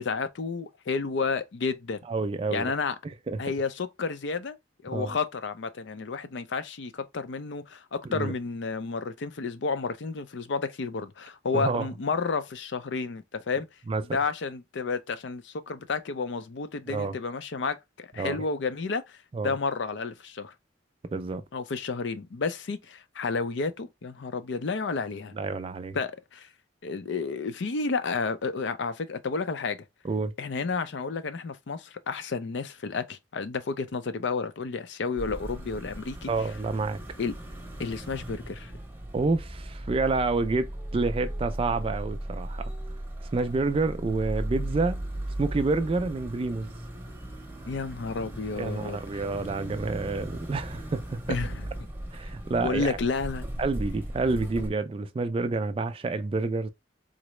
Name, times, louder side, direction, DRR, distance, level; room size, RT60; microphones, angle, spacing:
voice 1, 0.0-2.0 2.5-2.9 3.4-4.6 4.8-13.7 14.1-19.2 19.4-20.5 21.5-25.3 25.9-26.5 26.8-29.8 30.4-36.3 37.2-37.3 37.8-38.7 47.7-49.0 51.3-51.6 52.5-53.5, left 4 dB, 70° left, 0.5 m, -31 dB
voice 2, 2.1-2.7 3.0-3.4 4.9-5.2 8.1-8.3 11.5-11.9 13.9-14.0 16.9-17.1 18.2-18.5 19.3-19.5 21.1-21.4 25.3-26.0 30.0-30.3 36.3-37.0 39.1-42.7 43.3-45.0 45.4-46.7 48.6-51.4 52.1-53.0 53.6-56.7, right 3 dB, 30° right, 0.3 m, -28 dB
sound 1, 35.2-54.7, right 1 dB, 10° right, 0.7 m, -37 dB
3.8 x 2.0 x 3.0 m
head